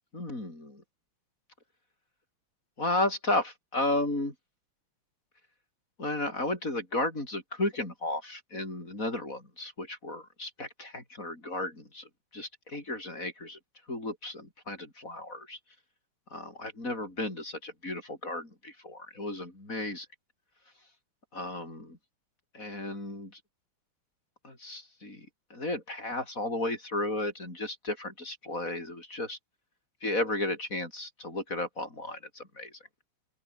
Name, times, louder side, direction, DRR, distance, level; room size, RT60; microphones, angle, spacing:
voice 1, 0.1-0.8 2.8-4.3 6.0-12.0 12.3-13.6 13.9-15.6 16.3-20.1 21.3-22.0 22.5-23.3 24.4-29.4 30.0-32.7, left 2 dB, 35° left, 6.7 m, -34 dB
open air
omnidirectional pair, 2.4 m